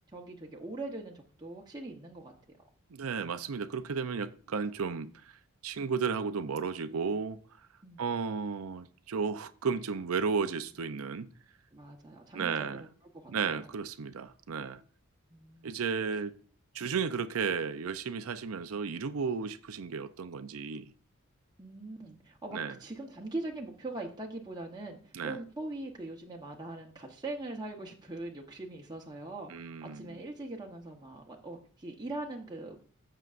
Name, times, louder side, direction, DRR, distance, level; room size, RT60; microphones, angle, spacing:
voice 1, 0.1-2.3 7.8-8.0 11.7-12.7 13.1-13.6 15.3-15.8 21.6-32.9, right 2 dB, 20° right, 0.9 m, -41 dB
voice 2, 2.9-7.4 8.0-11.3 12.3-12.9 13.3-14.8 15.6-16.4 16.7-20.9 22.5-22.8 25.1-25.4 29.5-30.2, right 5 dB, 80° right, 0.5 m, -34 dB
15.0 x 6.7 x 2.5 m
head